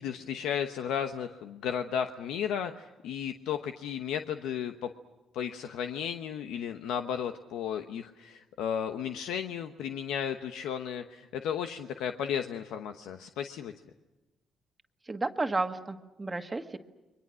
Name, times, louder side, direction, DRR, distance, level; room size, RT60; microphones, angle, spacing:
voice 1, 0.0-4.9 5.3-13.7, left 8 dB, 90° left, 7 dB, 1.0 m, -34 dB
voice 2, 15.0-16.8, right 3 dB, 20° right, 6 dB, 1.6 m, -32 dB
29.5 x 23.5 x 6.3 m, 1.1 s
cardioid pair, 90°, 0 cm